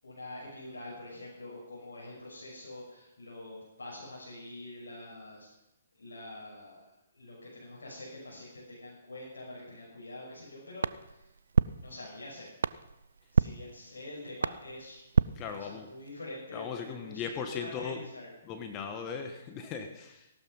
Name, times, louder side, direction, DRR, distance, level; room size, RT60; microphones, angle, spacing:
voice 1, 0.0-5.5 6.0-6.8 7.1-11.2 11.8-12.5 13.3-15.0 15.3-18.3, left 2 dB, 80° left, -6 dB, 6.5 m, -45 dB
sound 1, 10.8-16.1, right 5 dB, 75° right, 0.5 m, -32 dB
voice 2, 15.4-15.9 16.5-18.0 18.4-20.3, left 6 dB, 25° left, 6 dB, 1.5 m, -38 dB
17.5 x 12.0 x 5.5 m, 0.94 s
hypercardioid pair, 135°, 0 cm